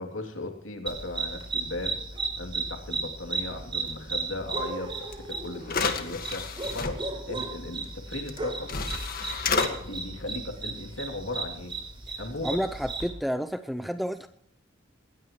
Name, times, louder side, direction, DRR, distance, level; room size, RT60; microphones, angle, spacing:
voice 1, 0.0-2.0 2.4-8.7 9.8-11.7 12.2-12.6, left 2 dB, 70° left, 3 dB, 3.0 m, -37 dB
sound 1, 0.9-13.1, right 3 dB, 25° right, 4.3 m, -35 dB
sound 2, 5.1-5.2 5.6-6.9 8.3-8.4 8.7-9.7, left 5 dB, 45° left, 1.8 m, -29 dB
voice 2, 12.4-14.3, equal, ahead, 8 dB, 0.5 m, -30 dB
20.5 x 19.5 x 3.2 m, 0.69 s
head